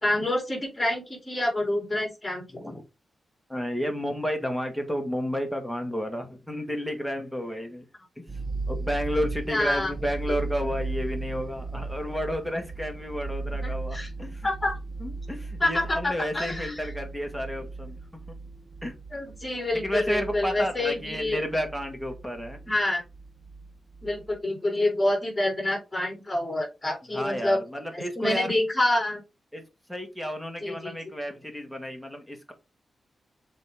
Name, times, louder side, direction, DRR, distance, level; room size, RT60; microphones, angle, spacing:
voice 1, 0.0-2.4 9.5-9.9 10.3-10.4 13.6-14.1 14.4-14.8 15.6-16.9 19.1-21.4 22.7-23.0 24.0-27.6 27.9-29.2 30.6-30.9, left 1 dB, 15° left, -1 dB, 3.6 m, -27 dB
voice 2, 2.5-2.8 3.5-7.8 8.2-8.3 8.7-14.5 15.0-18.0 18.8-19.0 19.7-22.6 27.1-28.5 29.5-29.6 29.9-32.5, equal, ahead, 4 dB, 1.8 m, -31 dB
sound 1, 8.3-24.4, right 3 dB, 25° right, 0.6 m, -37 dB
7.4 x 3.8 x 3.6 m, 0.27 s
wide cardioid pair, 110°, 0 cm